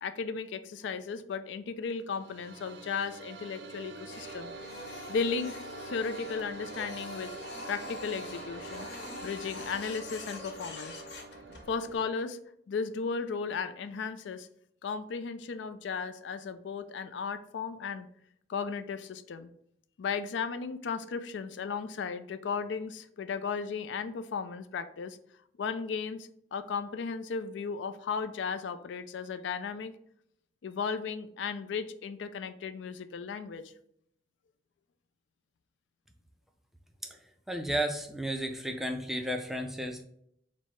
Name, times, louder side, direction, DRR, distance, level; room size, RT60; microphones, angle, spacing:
voice 1, 0.0-4.5 5.1-5.6 5.9-7.3 7.7-8.9 9.2-10.9 11.7-14.5 14.8-18.1 18.5-19.5 20.0-25.2 25.6-29.9 30.6-33.7, left 5 dB, 85° left, 11 dB, 0.4 m, -35 dB
sound 1, 1.9-12.2, right 4 dB, 75° right, 0.4 m, -46 dB
Printer, 4.1-12.0, left 2 dB, 65° left, 0.8 m, -44 dB
voice 2, 37.5-40.0, right 1 dB, ahead, 4 dB, 0.3 m, -33 dB
4.5 x 2.0 x 4.4 m, 0.69 s
head